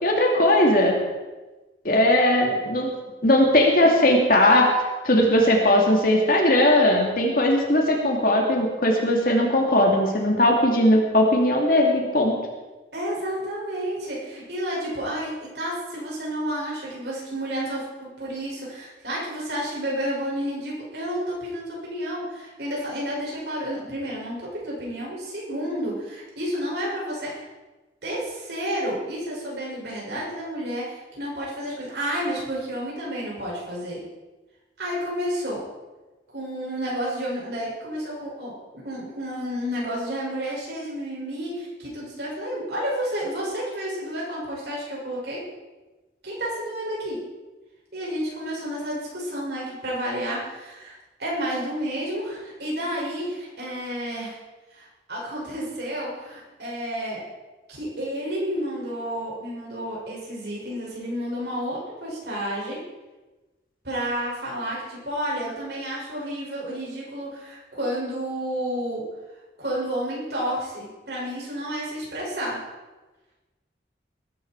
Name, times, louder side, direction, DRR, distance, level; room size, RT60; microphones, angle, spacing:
voice 1, 0.0-1.0 1.8-2.9 3.2-4.8 5.0-12.4, left 1 dB, 50° left, 0 dB, 2.6 m, -19 dB
voice 2, 12.9-27.5 28.0-34.0 34.8-35.6 36.3-45.4 46.2-47.2 47.9-54.4 54.7-57.2 57.7-62.8 63.8-69.0 69.6-72.6, equal, 60° right, -5 dB, 6.9 m, -31 dB
20.0 x 12.5 x 4.8 m, 1.2 s
head